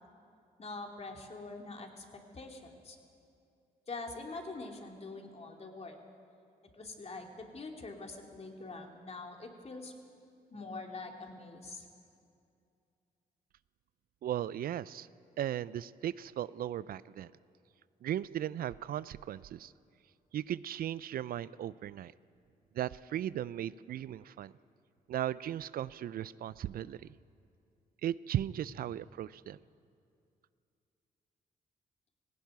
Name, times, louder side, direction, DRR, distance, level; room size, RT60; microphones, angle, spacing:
voice 1, 0.6-3.0 3.9-6.0 6.7-9.9 10.5-11.9, left 3 dB, 40° left, 2 dB, 3.1 m, -44 dB
voice 2, 14.2-15.1 15.4-17.3 18.0-19.7 20.3-22.1 22.7-24.5 25.1-27.0 28.0-29.6, right 11 dB, 65° right, 18 dB, 0.4 m, -36 dB
17.5 x 16.5 x 9.4 m, 2.5 s
supercardioid pair, 65°, 16 cm